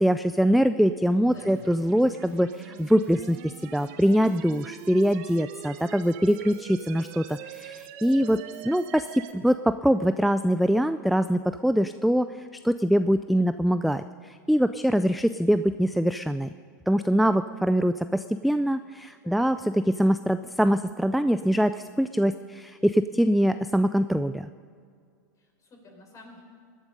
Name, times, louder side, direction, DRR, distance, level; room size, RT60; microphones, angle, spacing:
voice 1, 0.0-8.4 8.6-16.5 16.9-24.5, equal, ahead, 11 dB, 0.3 m, -23 dB
sound 1, 1.3-9.3, right 10 dB, 55° right, 1.2 m, -44 dB
voice 2, 8.3-8.6 19.2-19.4 25.4-26.4, left 2 dB, 30° left, 2 dB, 4.7 m, -50 dB
21.0 x 12.0 x 5.3 m, 2.2 s
hypercardioid pair, 100°, 11 cm